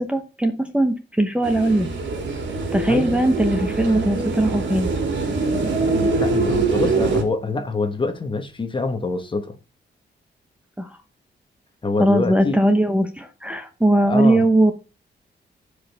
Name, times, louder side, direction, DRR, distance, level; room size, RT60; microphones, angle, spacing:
voice 1, 0.0-1.9 2.7-4.9 10.8-10.9 12.0-14.7, right 1 dB, 5° right, 0.9 m, -19 dB
sound 1, 1.4-7.2, right 4 dB, 80° right, 2.6 m, -23 dB
voice 2, 2.9-3.2 5.9-9.5 11.8-12.6 13.9-14.5, left 3 dB, 25° left, 1.2 m, -25 dB
15.0 x 5.0 x 3.5 m
wide cardioid pair, 140°, 19 cm